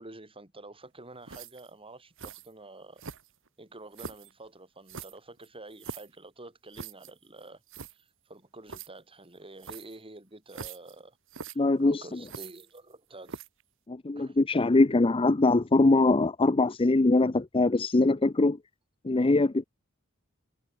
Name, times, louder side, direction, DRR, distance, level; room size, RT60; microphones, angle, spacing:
voice 1, 0.0-3.0 3.6-7.6 7.9-11.2 11.4-13.4 14.2-14.4, right 2 dB, 25° right, 5.7 m, -48 dB
sound 1, 1.3-1.7 2.2-2.5 3.0-3.5 3.9-4.3 4.9-6.2 6.7-7.1 7.4-7.5 7.7-7.9 8.7-8.9 9.6-10.0 10.5-10.9 11.3-11.6 12.2-12.9 13.3-13.6, right 5 dB, 65° right, 1.8 m, -42 dB
voice 2, 11.6-12.0 13.9-18.6 19.0-19.6, left 2 dB, 25° left, 0.6 m, -22 dB
head